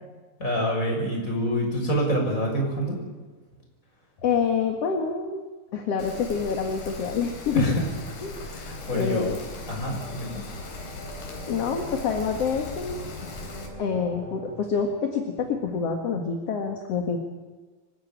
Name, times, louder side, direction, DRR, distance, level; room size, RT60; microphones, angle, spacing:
voice 1, 0.4-3.0 7.5-7.8 8.4-9.3 9.7-10.4, equal, 20° left, 0 dB, 6.7 m, -26 dB
voice 2, 4.2-5.4 5.7-7.7 8.2-8.4 8.9-9.4 11.5-13.0 13.8-17.2, left 6 dB, 50° left, 3 dB, 2.3 m, -27 dB
Rain, 6.0-13.7, left 3 dB, 65° left, 5.1 m, -39 dB
sound 1, 8.7-14.8, equal, 40° right, 5.4 m, -43 dB
26.0 x 16.0 x 9.0 m, 1.3 s
omnidirectional pair, 4.4 m